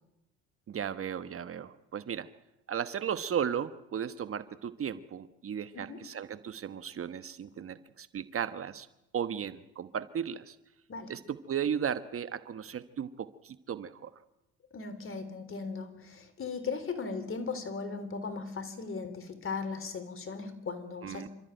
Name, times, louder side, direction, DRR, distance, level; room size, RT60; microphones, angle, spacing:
voice 1, 0.7-2.3 2.7-8.9 9.1-10.6 11.1-14.1 21.0-21.3, right 8 dB, 40° right, 12 dB, 1.2 m, -35 dB
voice 2, 14.7-21.3, left 4 dB, 40° left, 11 dB, 3.7 m, -38 dB
28.0 x 13.5 x 9.2 m, 0.91 s
supercardioid pair, 80°, 33 cm